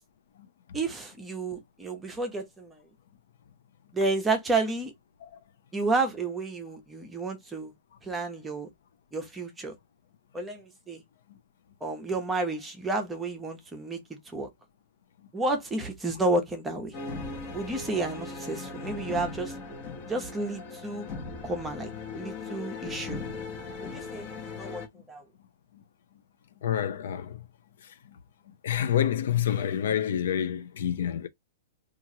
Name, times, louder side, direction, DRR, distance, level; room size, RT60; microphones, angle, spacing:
voice 1, 0.7-2.8 3.9-4.9 5.7-7.7 8.0-8.7 9.1-9.7 10.3-11.0 11.8-14.0 14.3-14.5 15.3-16.9 17.5-19.5 20.1-21.1 21.4-23.2 23.8-24.3 24.6-25.2, right 3 dB, 10° right, 0.7 m, -31 dB
sound 1, 16.9-24.9, left 3 dB, 35° left, 0.8 m, -38 dB
voice 2, 26.6-27.4 28.6-31.3, left 10 dB, 65° left, 0.5 m, -27 dB
2.9 x 2.4 x 2.7 m
hypercardioid pair, 160°, 0 cm